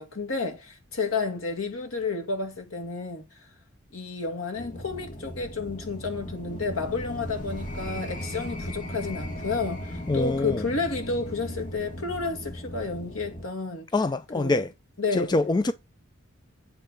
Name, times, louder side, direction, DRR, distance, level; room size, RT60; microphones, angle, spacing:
voice 1, 0.0-3.2 3.9-13.9 14.3-14.6 15.0-15.3, left 4 dB, 75° left, 2.1 m, -31 dB
sound 1, 4.5-13.5, equal, 40° left, 2.2 m, -37 dB
voice 2, 10.1-10.7 13.9-14.7 15.1-15.7, left 2 dB, 20° left, 0.4 m, -25 dB
9.0 x 3.7 x 6.5 m
head